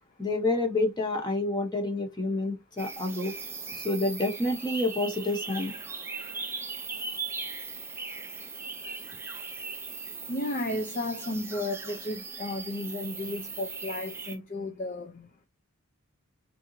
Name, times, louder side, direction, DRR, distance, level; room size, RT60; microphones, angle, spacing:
voice 1, 0.2-3.4 3.7-5.7, left 2 dB, 20° left, 0.9 m, -28 dB
sound 1, 2.8-14.4, right 4 dB, 10° right, 0.5 m, -39 dB
voice 2, 10.3-15.3, left 1 dB, 35° left, 0.6 m, -33 dB
3.8 x 3.4 x 3.0 m
head